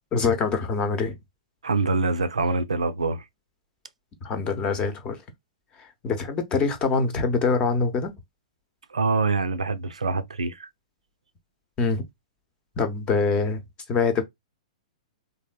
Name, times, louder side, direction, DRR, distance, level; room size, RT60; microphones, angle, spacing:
voice 1, 0.1-1.1 4.2-5.2 6.0-8.1 11.8-12.0 12.8-13.6 13.9-14.2, left 4 dB, 25° left, 0.8 m, -24 dB
voice 2, 1.6-3.2 8.9-10.7, right 3 dB, 75° right, 0.4 m, -25 dB
3.4 x 2.6 x 2.2 m
figure-of-eight pair, 110°, 4 cm